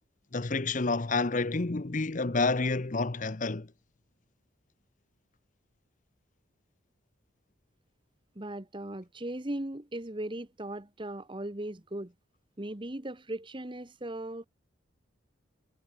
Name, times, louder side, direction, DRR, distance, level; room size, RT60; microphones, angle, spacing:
voice 1, 0.3-3.7, left 3 dB, 40° left, 0.8 m, -29 dB
voice 2, 8.3-12.1 12.6-14.5, right 1 dB, 25° right, 1.3 m, -38 dB
head